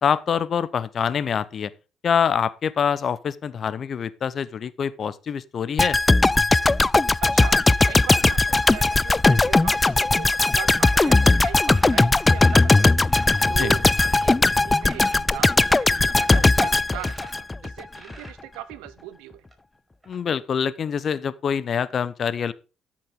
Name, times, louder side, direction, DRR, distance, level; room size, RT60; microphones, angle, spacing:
voice 1, 0.0-1.7 2.0-6.0 13.6-13.7 20.1-22.5, left 7 dB, 50° left, 0.8 m, -25 dB
sound 1, 5.8-17.8 18.1-18.3, left 2 dB, 20° left, 0.4 m, -18 dB
voice 2, 7.2-13.1 13.5-19.4, right 15 dB, 90° right, 0.9 m, -39 dB
sound 2, 11.7-13.5 13.8-14.5 14.9-17.4 17.9-18.4 19.0-19.1 19.5-19.6 20.0-20.2, right 2 dB, 20° right, 5.5 m, -45 dB
13.0 x 7.4 x 3.8 m
supercardioid pair, 75°, 0 cm